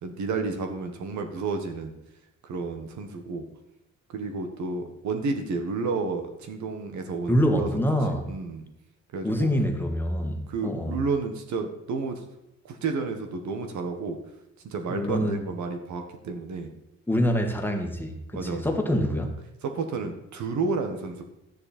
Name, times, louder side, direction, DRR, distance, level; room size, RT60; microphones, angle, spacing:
voice 1, 0.0-1.9 2.4-3.4 4.1-7.8 8.3-8.7 9.1-9.5 10.5-12.2 12.6-14.2 14.6-16.7 18.3-19.0 19.6-21.2, right 4 dB, 70° right, 5 dB, 1.6 m, -31 dB
voice 2, 7.3-8.3 9.2-11.0 14.9-15.4 17.1-19.3, equal, 5° left, 3 dB, 1.8 m, -25 dB
12.0 x 9.8 x 4.4 m, 0.87 s
cardioid pair, 90°, 30 cm